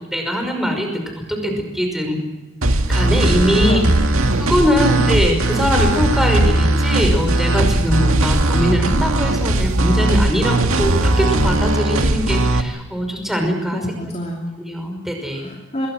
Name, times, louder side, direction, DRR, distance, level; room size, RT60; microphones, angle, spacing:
voice 1, 0.1-1.0 1.3-2.2 2.9-3.8 4.4-13.8 14.6-15.5, equal, ahead, 3 dB, 5.6 m, -21 dB
sound 1, 2.6-12.6, right 1 dB, 65° right, 2.0 m, -18 dB
voice 2, 3.6-4.2 4.8-5.0 13.7-14.6 15.3-15.9, left 1 dB, 30° left, 1 dB, 2.9 m, -27 dB
27.0 x 22.5 x 6.3 m, 1.1 s
head